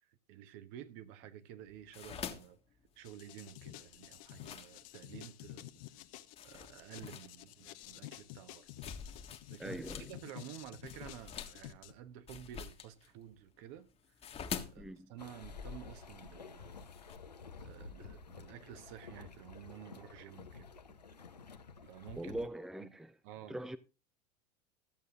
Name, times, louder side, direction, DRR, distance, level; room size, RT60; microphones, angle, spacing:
voice 1, 0.0-2.6 2.9-5.7 6.4-8.7 9.5-14.1 14.7-16.8 17.6-20.7 21.8-22.4 22.8-22.9 23.2-23.6, right 11 dB, 55° right, 1.3 m, -51 dB
sound 1, 1.7-5.3 5.8-6.0 6.4-10.1 10.4-17.2, left 7 dB, 30° left, 1.6 m, -47 dB
sound 2, 3.0-11.9, left 16 dB, 55° left, 1.0 m, -51 dB
voice 2, 9.6-10.1 14.8-15.1 22.2-23.1 23.5-23.8, right 1 dB, ahead, 0.7 m, -42 dB
sound 3, 15.2-22.5, left 4 dB, 85° left, 1.1 m, -52 dB
13.5 x 8.1 x 3.8 m
figure-of-eight pair, 80°, 20 cm